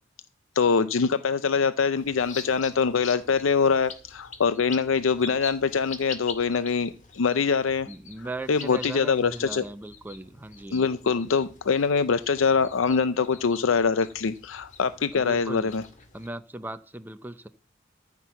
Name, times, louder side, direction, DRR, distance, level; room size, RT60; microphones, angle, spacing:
voice 1, 0.6-7.9 8.5-9.6 10.7-15.8, left 5 dB, 85° left, 13 dB, 0.5 m, -24 dB
sound 1, 2.0-16.3, left 5 dB, 40° left, 2.0 m, -44 dB
voice 2, 7.9-10.9 15.1-15.7 16.1-17.5, right 2 dB, 10° right, 9 dB, 0.6 m, -38 dB
14.5 x 6.0 x 7.0 m, 0.38 s
head